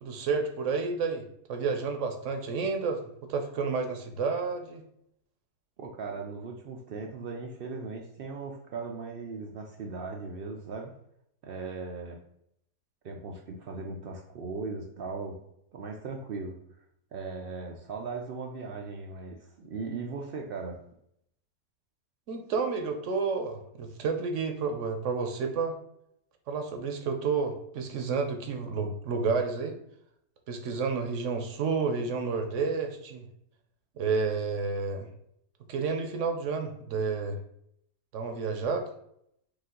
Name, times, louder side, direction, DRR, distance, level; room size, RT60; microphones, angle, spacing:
voice 1, 0.0-1.2 1.5-4.8 22.3-25.7 26.5-29.8 30.5-33.3 34.0-35.1 35.7-37.4 38.1-38.9, right 4 dB, 65° right, 5 dB, 0.9 m, -30 dB
voice 2, 5.8-10.9 11.4-12.2 13.0-15.4 15.7-16.8 17.1-20.8, right 4 dB, 85° right, 1 dB, 0.5 m, -38 dB
5.0 x 2.4 x 3.7 m, 0.73 s
omnidirectional pair, 1.5 m